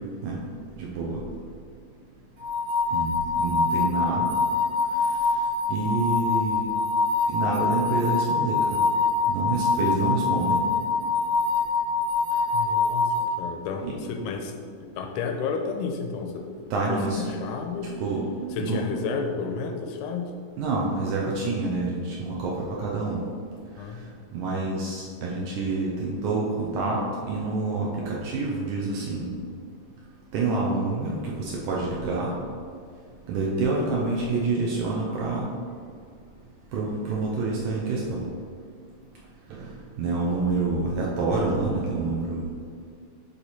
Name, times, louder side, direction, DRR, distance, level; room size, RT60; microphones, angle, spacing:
voice 1, 0.8-1.2 2.9-4.3 5.7-6.7 7.3-8.8 9.3-10.6 13.8-13.9 14.3-14.4 15.0-15.1 16.7-18.8 20.6-23.2 24.3-27.0 27.3-29.3 30.3-32.3 33.3-35.5 36.7-38.2 39.6-39.7 40.0-42.5, right 3 dB, 75° right, -3 dB, 2.0 m, -27 dB
sound 1, 2.4-13.2, left 4 dB, 45° right, 2.0 m, -25 dB
voice 2, 12.5-14.5 14.8-16.5 16.9-18.0 18.6-20.4 23.8-24.0, left 5 dB, 80° left, 4 dB, 1.9 m, -31 dB
9.8 x 3.3 x 4.1 m, 2.2 s
omnidirectional pair, 4.0 m